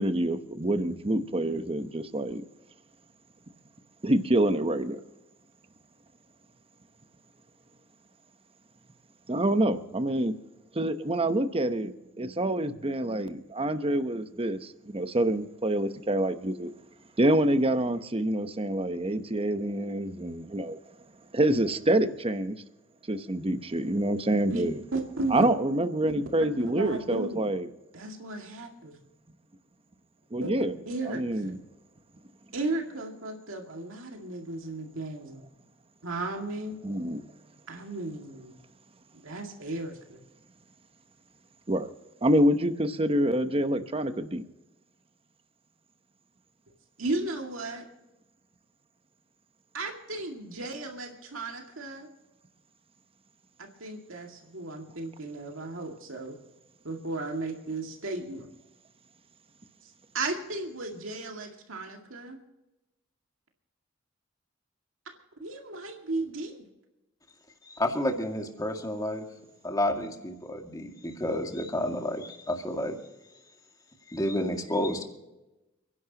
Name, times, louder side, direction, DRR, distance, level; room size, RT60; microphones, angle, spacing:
voice 1, 0.0-2.4 4.0-5.0 9.3-10.3 10.7-16.7 17.2-20.8 21.3-22.6 23.1-24.8 25.3-27.7 30.3-30.7 31.1-31.6 36.8-37.2 41.7-41.9 42.2-44.4, right 1 dB, 30° right, 9 dB, 0.9 m, -26 dB
voice 2, 24.9-25.5 26.4-27.5 27.9-29.0 30.4-31.6 32.5-35.5 36.0-36.8 37.7-38.6 39.2-40.2 47.0-47.8 49.7-52.1 53.6-56.4 56.8-58.5 59.8-62.4 65.4-66.7, right 2 dB, 80° right, 2 dB, 2.2 m, -35 dB
voice 3, 67.6-69.3 69.6-73.0 74.1-75.0, left 1 dB, 20° left, 3 dB, 2.1 m, -30 dB
30.0 x 11.0 x 2.9 m, 0.99 s
head